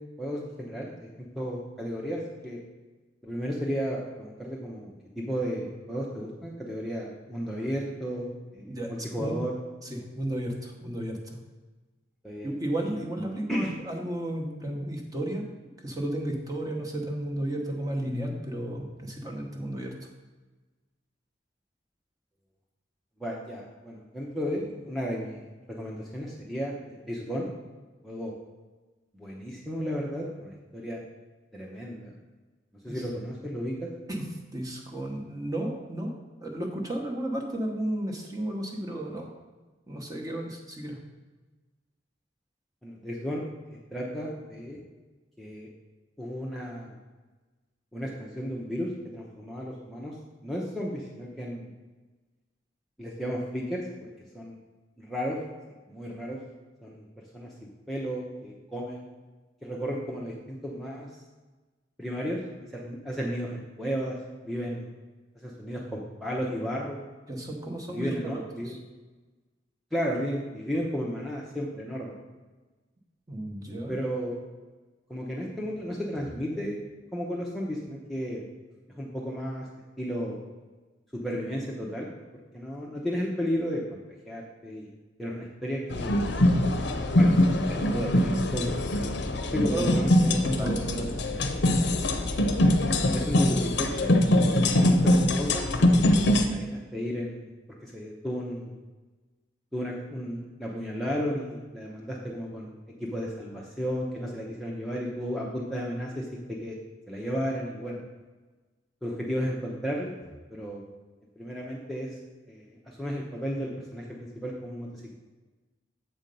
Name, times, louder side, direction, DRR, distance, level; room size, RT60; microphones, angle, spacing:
voice 1, 0.2-1.1 1.4-2.6 3.2-9.6 12.2-12.5 13.5-13.7 23.2-27.5 28.0-28.3 29.1-31.0 31.5-32.1 32.8-33.9 42.8-43.4 43.7-44.8 45.4-45.7 46.2-46.9 47.9-50.2 50.4-51.7 53.0-53.8 54.3-54.5 55.0-55.4 55.9-56.4 56.8-57.1 57.3-59.1 59.6-61.2 62.0-62.4 62.7-64.2 64.4-64.9 65.4-67.0 67.9-68.8 69.9-72.1 73.9-74.4 75.1-76.8 77.1-78.4 78.9-79.7 80.0-80.4 81.1-82.1 82.5-84.0 84.3-84.9 85.2-86.1 87.1-87.4 87.7-89.1 89.5-90.7 92.6-92.7 93.1-94.2 94.7-96.0 96.4-97.5 97.8-98.7 99.7-102.7 103.0-106.8 107.1-108.0 109.0-110.1 110.5-110.8 111.4-112.2 112.5-115.1, equal, ahead, -4 dB, 0.7 m, -33 dB
voice 2, 8.6-9.3 9.9-11.4 12.4-15.4 15.8-19.9 32.9-33.0 34.1-34.2 34.5-36.1 36.4-39.3 39.9-41.0 67.3-68.1 68.6-68.8 73.3-73.9 89.6-89.9 90.6-91.1, right 1 dB, 20° right, 0 dB, 1.0 m, -33 dB
sound 1, 85.9-96.5, left 1 dB, 60° left, 0.7 m, -23 dB
7.6 x 4.4 x 5.3 m, 1.3 s
head